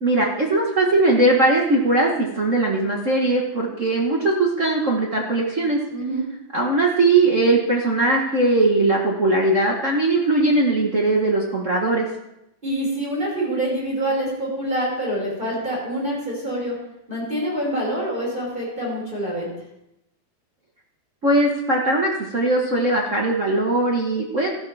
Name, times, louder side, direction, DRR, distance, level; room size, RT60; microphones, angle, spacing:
voice 1, 0.0-5.8 6.5-12.1 21.2-24.5, right 2 dB, 60° right, -1 dB, 0.8 m, -20 dB
voice 2, 5.9-6.2 12.6-16.8 17.1-19.5, right 1 dB, 15° right, -5 dB, 5.5 m, -26 dB
14.0 x 12.0 x 3.4 m, 0.84 s
omnidirectional pair, 3.4 m